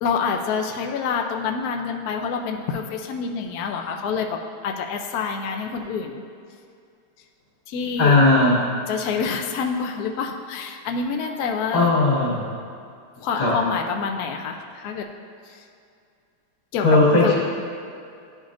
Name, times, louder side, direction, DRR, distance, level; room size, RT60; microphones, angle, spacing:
voice 1, 0.0-6.2 7.7-8.2 8.9-11.9 13.2-15.1 16.7-16.8 17.2-17.3, left 5 dB, 80° left, 4 dB, 0.8 m, -27 dB
voice 2, 8.0-8.6 11.7-12.5 13.4-13.6 16.8-17.3, left 2 dB, 65° left, -7 dB, 2.6 m, -17 dB
11.5 x 5.2 x 2.5 m, 2.4 s
omnidirectional pair, 2.3 m